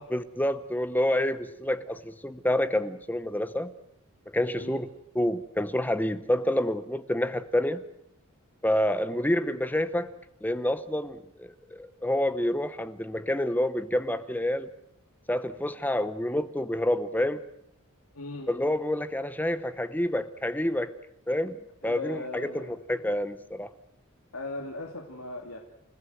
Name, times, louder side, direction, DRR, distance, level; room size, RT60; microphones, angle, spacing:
voice 1, 0.1-3.7 4.3-4.9 5.1-7.8 8.6-10.1 10.4-14.7 15.3-17.4 18.5-20.9 21.3-21.6 21.8-23.7, left 1 dB, 10° left, 13 dB, 0.8 m, -28 dB
voice 2, 9.1-9.6 18.1-18.5 21.8-22.7 24.3-25.6, left 2 dB, 80° left, 2 dB, 2.6 m, -38 dB
29.0 x 16.5 x 7.8 m, 0.75 s
head